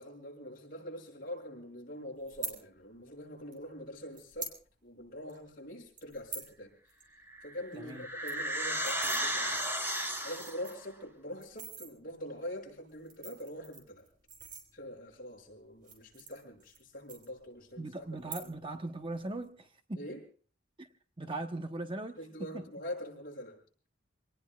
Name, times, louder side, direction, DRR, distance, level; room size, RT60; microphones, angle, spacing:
voice 1, 0.0-4.5 4.8-6.7 7.4-9.7 10.2-14.1 14.7-18.1 18.4-18.5 20.0-20.2 22.2-23.6, left 1 dB, 50° left, -1 dB, 6.4 m, -44 dB
sound 1, 2.3-2.6 3.5-3.6 4.1-4.6 4.9-5.0 5.3-5.5 6.0-6.5 6.9-7.0 7.3-7.4 7.7-7.8 8.1-9.2 9.9-10.0 10.3-10.9 11.4-11.9 12.9-15.1 15.7-16.8 17.1-17.7 18.1-18.7 19.0-19.4, right 5 dB, 45° right, 5.0 m, -44 dB
sound 2, 7.3-10.7, right 1 dB, 10° right, 2.6 m, -34 dB
voice 2, 7.7-8.1 17.8-20.1 20.8-20.9 21.2-22.6, right 2 dB, 25° right, 6 dB, 1.0 m, -39 dB
27.5 x 19.0 x 2.4 m, 0.40 s
head